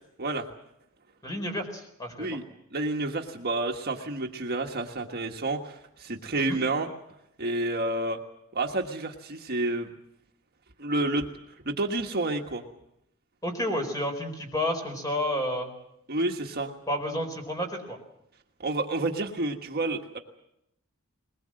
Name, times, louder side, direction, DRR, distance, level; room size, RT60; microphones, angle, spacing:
voice 1, 1.2-2.3 6.4-6.6 13.4-15.7 16.9-18.0, left 1 dB, 20° left, 4 dB, 4.5 m, -30 dB
voice 2, 2.7-6.9 7.4-8.2 8.5-9.9 10.8-11.3 11.6-12.6 16.1-16.7 18.6-20.2, right 2 dB, 50° right, 3 dB, 1.5 m, -29 dB
21.5 x 21.0 x 7.7 m, 0.80 s
head